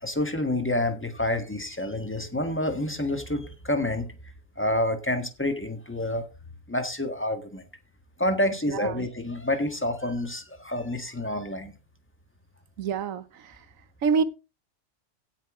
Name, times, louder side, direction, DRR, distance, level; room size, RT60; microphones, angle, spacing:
voice 1, 0.0-4.1 4.5-6.2 6.7-7.6 8.2-11.7, left 1 dB, 10° left, 1.5 m, -28 dB
voice 2, 8.7-9.1 12.8-13.6 14.0-14.2, right 6 dB, 75° right, 1.3 m, -27 dB
17.0 x 5.8 x 3.7 m
omnidirectional pair, 1.4 m